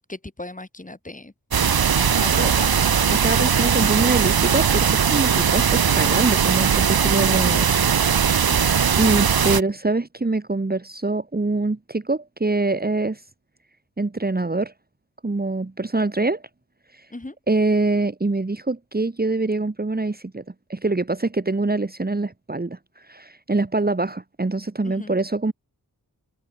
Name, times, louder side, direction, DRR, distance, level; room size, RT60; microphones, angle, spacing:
voice 1, 0.1-1.3 2.2-2.8 8.3-8.7 9.5-9.6 17.1-17.4 24.8-25.2, left 2 dB, 20° left, 7.2 m, -37 dB
sound 1, 1.5-9.6, right 7 dB, 70° right, 1.5 m, -19 dB
voice 2, 3.1-7.7 9.0-13.2 14.0-14.7 15.2-16.4 16.9-17.1 17.5-20.4 20.7-25.5, right 3 dB, 25° right, 2.3 m, -24 dB
wide cardioid pair, 105°, 37 cm